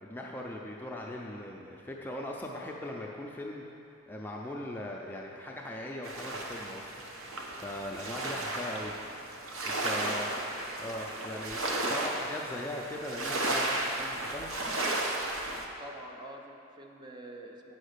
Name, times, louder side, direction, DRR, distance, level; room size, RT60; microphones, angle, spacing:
voice 1, 0.0-3.6 4.1-6.9 7.6-8.9 9.6-10.3 10.8-14.5, left 1 dB, 10° left, -2 dB, 0.5 m, -39 dB
sound 1, 6.0-15.7, right 2 dB, 80° right, 1.0 m, -34 dB
voice 2, 10.2-10.6 15.8-17.7, right 1 dB, 20° right, 1 dB, 0.8 m, -47 dB
9.3 x 5.3 x 6.6 m, 2.9 s
head